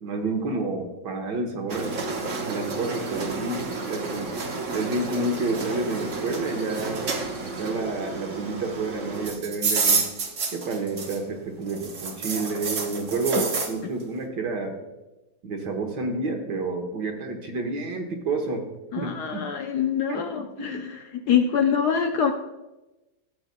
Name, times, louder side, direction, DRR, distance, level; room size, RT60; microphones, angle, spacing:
voice 1, 0.0-1.9 2.5-4.3 4.7-7.0 7.4-10.1 10.5-14.8 15.4-18.6 18.9-19.5 20.1-20.8, right 3 dB, 60° right, 3 dB, 1.7 m, -29 dB
sound 1, 1.7-11.4 11.7-13.7, right 4 dB, 45° right, 1.1 m, -30 dB
voice 2, 18.9-21.0 21.3-22.3, left 7 dB, 70° left, 5 dB, 1.0 m, -24 dB
14.0 x 7.9 x 2.2 m, 1.0 s
omnidirectional pair, 2.1 m